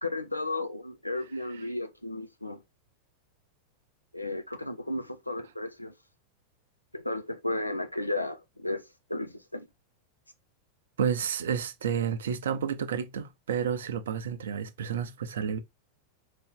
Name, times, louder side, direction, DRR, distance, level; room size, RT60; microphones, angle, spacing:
voice 1, 0.0-2.6 4.1-5.9 6.9-9.7, left 2 dB, 85° left, 0.6 m, -34 dB
voice 2, 11.0-15.6, right 7 dB, 60° right, 0.5 m, -30 dB
4.2 x 2.8 x 3.6 m
figure-of-eight pair, 90°, 0 cm